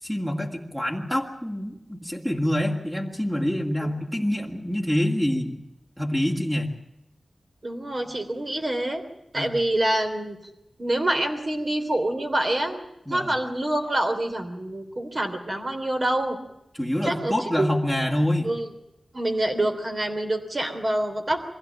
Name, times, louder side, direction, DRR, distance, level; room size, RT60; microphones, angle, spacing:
voice 1, 0.0-5.6 6.0-6.7 9.3-9.5 13.1-13.3 16.8-18.5, left 1 dB, 5° right, 0 dB, 2.4 m, -26 dB
voice 2, 7.6-9.0 9.3-10.4 10.8-12.8 13.1-16.4 17.0-17.7 18.4-18.7 19.1-21.4, right 1 dB, 40° right, 5 dB, 3.2 m, -26 dB
22.5 x 16.0 x 9.0 m, 0.88 s
wide cardioid pair, 80°, 0 cm